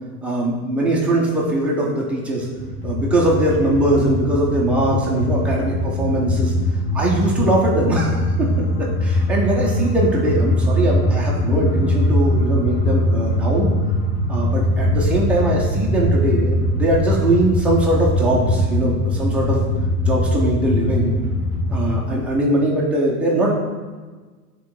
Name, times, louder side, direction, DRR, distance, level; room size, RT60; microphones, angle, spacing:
voice 1, 0.2-2.5 2.8-6.5 6.9-8.5 8.8-13.7 14.3-19.6 20.0-21.1 21.7-23.5, right 1 dB, 5° right, -5 dB, 0.4 m, -21 dB
sound 1, 2.6-22.0, left 1 dB, 25° left, 1.7 m, -21 dB
9.0 x 3.7 x 4.6 m, 1.4 s
supercardioid pair, 145°, 47 cm